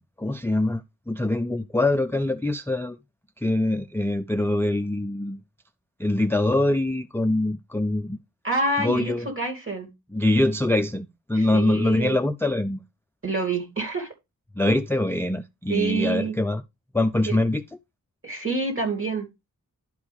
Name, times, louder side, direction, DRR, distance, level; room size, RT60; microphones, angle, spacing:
voice 1, 0.0-3.0 3.4-5.4 6.0-8.2 8.8-9.3 10.1-12.8 14.6-16.6 16.9-17.6, left 1 dB, 5° left, 0.4 m, -24 dB
voice 2, 8.4-9.9 11.3-12.2 13.2-14.1 14.6-14.8 15.7-16.4 17.3-17.4 18.2-19.3, right 3 dB, 35° right, 2.7 m, -27 dB
11.5 x 4.9 x 3.5 m
wide cardioid pair, 110°, 36 cm